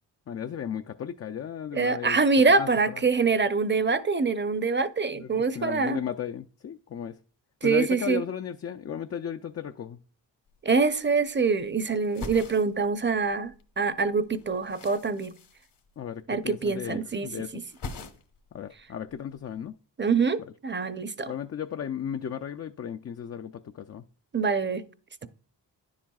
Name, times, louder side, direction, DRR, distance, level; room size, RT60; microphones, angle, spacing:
voice 1, 0.3-2.2 2.6-3.0 5.1-7.2 7.6-10.0 16.0-17.5 18.5-19.8 21.3-24.0, left 8 dB, 35° left, 0.4 m, -35 dB
voice 2, 1.7-6.0 7.6-8.2 10.6-15.4 16.3-17.6 20.0-21.3 24.3-24.8, right 4 dB, 25° right, 0.6 m, -25 dB
sound 1, 10.5-10.6 10.8-11.7 12.0-13.6 13.9-16.4 16.7-17.2 17.5-18.5 18.8-19.6, left 3 dB, 70° left, 1.5 m, -43 dB
10.0 x 7.4 x 2.3 m
cardioid pair, 55°, 43 cm